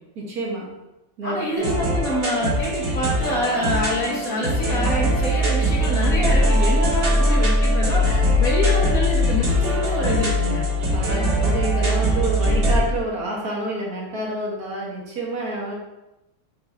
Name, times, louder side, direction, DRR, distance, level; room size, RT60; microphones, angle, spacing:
voice 1, 0.2-0.7 1.2-1.8 10.9-15.7, right 1 dB, 55° right, -3 dB, 1.7 m, -28 dB
voice 2, 1.2-10.6, left 1 dB, 50° left, -2 dB, 1.5 m, -26 dB
sound 1, 1.6-12.8, equal, 85° right, 2.8 m, -21 dB
7.2 x 4.8 x 3.4 m, 0.96 s
omnidirectional pair, 2.1 m